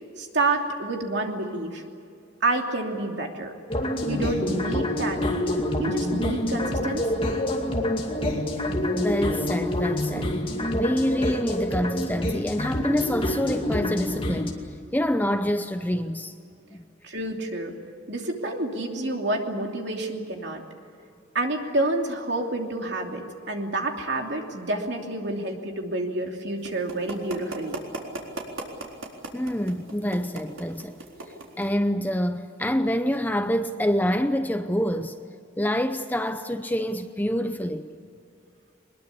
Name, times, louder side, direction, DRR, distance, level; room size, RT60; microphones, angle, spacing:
voice 1, 0.2-1.8 2.4-3.5 4.0-5.4 5.8-7.3 17.0-17.7 18.1-20.6 21.3-27.8, right 2 dB, 55° right, 3.0 m, -29 dB
sound 1, 3.7-14.5, left 1 dB, 25° left, 2.3 m, -27 dB
voice 2, 8.9-10.3 10.7-14.6 14.9-16.3 29.3-31.0 31.6-35.2 35.6-37.9, equal, 10° left, 0.7 m, -26 dB
sound 2, 26.6-31.7, right 2 dB, 85° right, 4.1 m, -36 dB
22.5 x 21.5 x 8.5 m
head